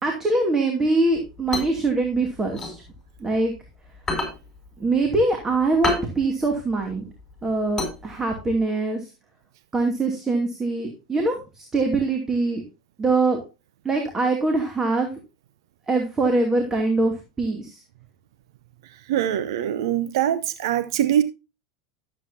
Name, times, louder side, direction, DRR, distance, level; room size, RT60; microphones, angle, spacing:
voice 1, 0.0-2.7 3.2-3.5 4.8-7.1 7.4-9.1 9.7-12.6 13.0-13.4 13.8-15.1 15.9-17.8, right 3 dB, 20° right, 2.5 m, -23 dB
sound 1, 1.1-3.6 3.9-8.6, left 2 dB, 15° left, 5.3 m, -31 dB
voice 2, 19.1-21.2, right 11 dB, 75° right, 0.7 m, -23 dB
13.0 x 8.0 x 2.7 m
hypercardioid pair, 100°, 3 cm